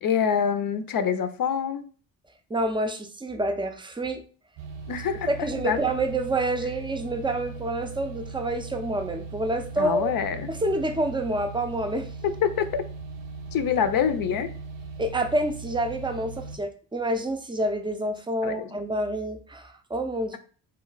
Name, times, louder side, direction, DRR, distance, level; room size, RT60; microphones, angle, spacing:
voice 1, 0.0-1.8 4.9-5.3 5.6-5.8 9.8-10.5 12.2-12.8 13.5-14.5 18.4-18.7, left 7 dB, 55° left, 10 dB, 0.5 m, -25 dB
voice 2, 2.5-4.2 5.3-10.1 10.5-12.1 15.0-20.4, right 1 dB, 10° right, 6 dB, 0.4 m, -28 dB
sound 1, 4.6-16.6, right 4 dB, 80° right, 0.6 m, -39 dB
2.2 x 2.2 x 3.8 m, 0.41 s
supercardioid pair, 55°, 43 cm